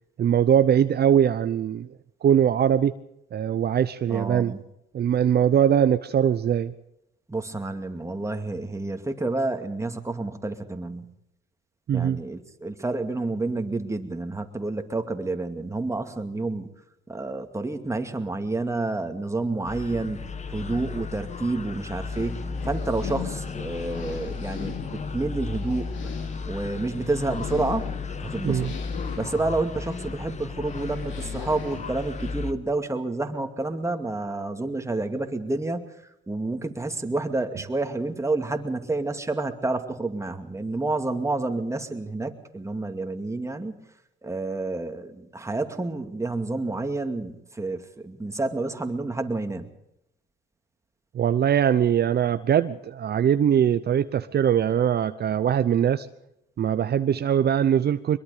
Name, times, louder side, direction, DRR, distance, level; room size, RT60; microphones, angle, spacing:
voice 1, 0.2-1.9 2.2-2.9 3.3-4.5 4.9-6.7 11.9-12.2 28.4-28.7 51.1-56.1 56.6-58.2, right 9 dB, 55° right, 11 dB, 0.8 m, -21 dB
voice 2, 4.1-4.6 7.3-11.1 11.9-16.7 17.1-20.2 20.5-25.9 26.5-27.9 28.2-28.7 29.1-35.9 36.3-43.7 44.2-49.7, right 2 dB, 15° right, 6 dB, 2.5 m, -29 dB
sound 1, 19.7-32.5, left 4 dB, 35° left, 1.5 m, -34 dB
sound 2, 22.1-32.3, left 7 dB, 70° left, 2.9 m, -41 dB
23.0 x 22.0 x 5.1 m, 0.82 s
cardioid pair, 90°, 20 cm